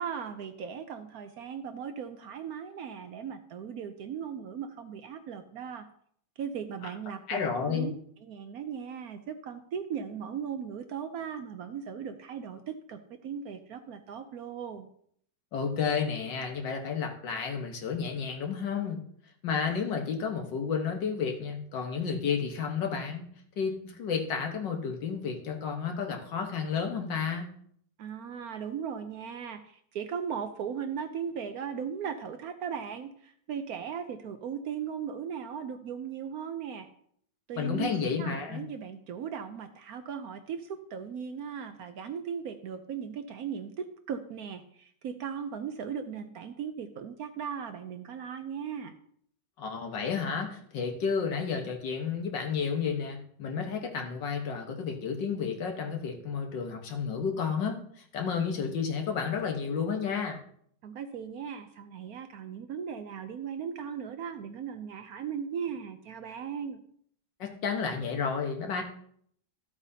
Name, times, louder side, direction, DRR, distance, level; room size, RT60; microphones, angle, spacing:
voice 1, 0.0-5.9 6.4-7.9 8.2-14.9 28.0-36.9 37.5-48.9 60.8-66.8, right 7 dB, 65° right, 8 dB, 1.0 m, -38 dB
voice 2, 7.3-7.9 15.5-19.0 19.4-23.3 23.6-27.5 37.6-38.6 49.6-60.4 67.4-68.8, left 6 dB, 80° left, 3 dB, 1.9 m, -31 dB
13.5 x 8.1 x 2.7 m, 0.65 s
omnidirectional pair, 1.9 m